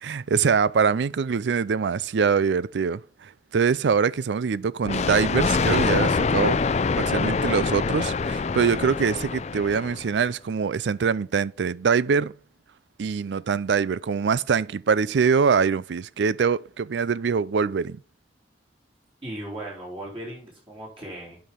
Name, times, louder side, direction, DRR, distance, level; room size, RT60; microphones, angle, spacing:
voice 1, 0.0-6.6 7.0-12.3 13.0-18.0, right 6 dB, 85° right, 0.4 m, -24 dB
Thunder, 4.9-10.2, left 4 dB, 40° left, 0.4 m, -25 dB
voice 2, 19.2-21.4, right 1 dB, 30° right, 4.5 m, -37 dB
8.5 x 5.5 x 5.7 m
head